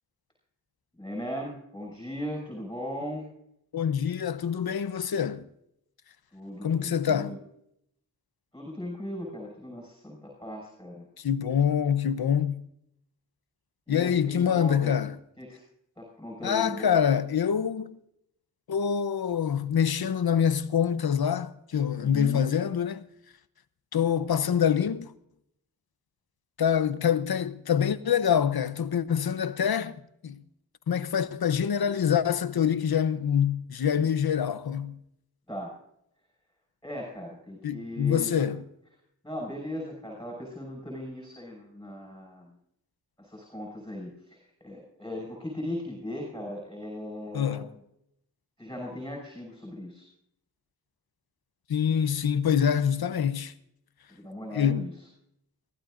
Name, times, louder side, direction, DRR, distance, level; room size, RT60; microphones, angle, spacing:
voice 1, 1.0-3.3 6.3-7.4 8.5-11.1 13.9-14.9 15.4-15.6 16.0-17.0 22.0-22.6 35.5-35.7 36.8-38.5 39.2-42.5 43.2-47.6 48.6-50.1 54.1-54.9, left 1 dB, 10° left, 5.9 m, -38 dB
voice 2, 3.7-5.4 6.6-7.4 11.2-12.6 13.9-15.1 16.4-18.0 18.7-23.0 23.9-25.1 26.6-30.0 30.2-30.4 30.9-35.0 37.6-38.6 47.3-47.7 51.7-53.5 54.5-54.9, left 8 dB, 70° left, 0.9 m, -25 dB
23.5 x 16.0 x 2.6 m
wide cardioid pair, 75°, 38 cm